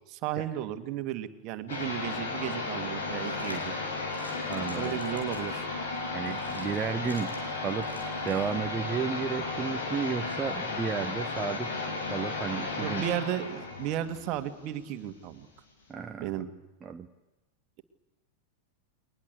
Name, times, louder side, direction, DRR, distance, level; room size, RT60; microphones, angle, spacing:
voice 1, 0.1-3.8 4.7-5.7 12.8-15.5 16.2-16.5, right 12 dB, 40° right, 9 dB, 2.2 m, -34 dB
sound 1, 1.7-15.1, left 3 dB, 65° left, 6.7 m, -34 dB
sound 2, 3.2-8.5, equal, 85° left, 4.7 m, -49 dB
voice 2, 4.5-5.0 6.1-7.9 8.2-11.7 12.1-13.0 15.9-16.4 16.8-17.1, right 6 dB, 20° right, 5 dB, 1.2 m, -33 dB
29.5 x 23.0 x 8.3 m, 1.0 s
figure-of-eight pair, 90°, 0 cm